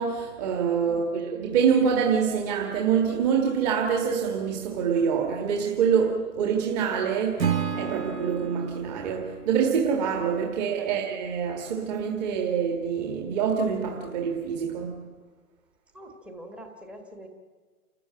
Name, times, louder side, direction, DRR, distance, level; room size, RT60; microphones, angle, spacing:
voice 1, 0.0-15.1, right 7 dB, 25° right, 1.8 m, -26 dB
Acoustic guitar / Strum, 7.4-10.6, right 7 dB, 90° right, 1.7 m, -32 dB
voice 2, 10.4-10.9 15.9-17.3, right 1 dB, ahead, 1.3 m, -45 dB
29.5 x 13.5 x 8.8 m
figure-of-eight pair, 145°, 48 cm